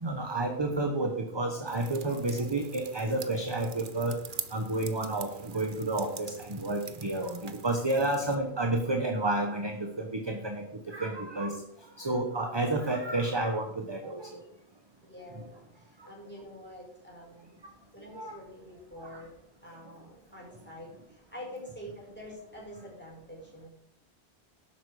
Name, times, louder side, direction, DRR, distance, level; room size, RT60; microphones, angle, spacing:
voice 1, 0.0-4.2 4.5-11.6 12.0-14.4 15.3-15.4 16.0-16.1 18.1-18.4 19.0-19.2, right 2 dB, 25° right, 4 dB, 1.1 m, -31 dB
sound 1, 1.7-8.4, right 6 dB, 50° right, 1.0 m, -45 dB
voice 2, 15.0-17.6 17.9-23.7, equal, 10° left, -3 dB, 5.2 m, -46 dB
12.0 x 8.6 x 4.9 m, 0.79 s
omnidirectional pair, 1.1 m